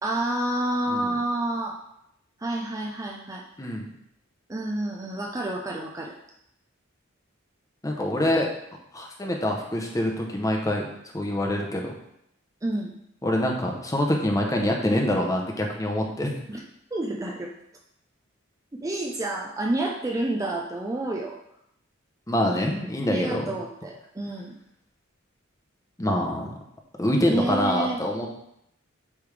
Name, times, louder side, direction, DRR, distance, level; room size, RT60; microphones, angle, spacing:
voice 1, 0.0-1.8 2.4-3.4 4.5-6.1 12.6-13.0 16.5-16.6 16.9-17.5 18.7-21.4 23.0-24.5 27.3-28.0, right 1 dB, 15° right, -1 dB, 0.5 m, -29 dB
voice 2, 7.8-8.5 8.9-10.9 11.1-11.9 13.2-16.3 22.3-23.4 26.0-26.5 27.0-28.3, left 1 dB, 15° left, 1 dB, 0.8 m, -25 dB
8.2 x 3.4 x 3.3 m, 0.77 s
head